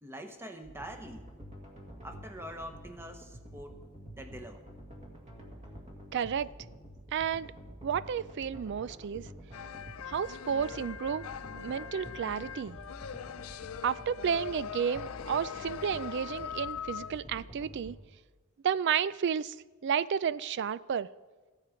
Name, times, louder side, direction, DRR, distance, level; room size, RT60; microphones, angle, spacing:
voice 1, 0.0-1.3 2.0-3.8 4.1-4.6, equal, 10° right, 6 dB, 1.1 m, -44 dB
sound 1, 0.6-17.9, equal, 35° right, 1.8 m, -48 dB
voice 2, 6.1-6.5 7.1-7.5 7.8-9.3 10.1-11.3 11.5-12.8 13.8-18.0 18.6-19.6 19.8-21.1, right 7 dB, 55° right, 18 dB, 0.4 m, -31 dB
sound 2, 9.5-17.2, left 8 dB, 85° left, 0.4 m, -42 dB
15.0 x 9.3 x 5.1 m, 1.3 s
head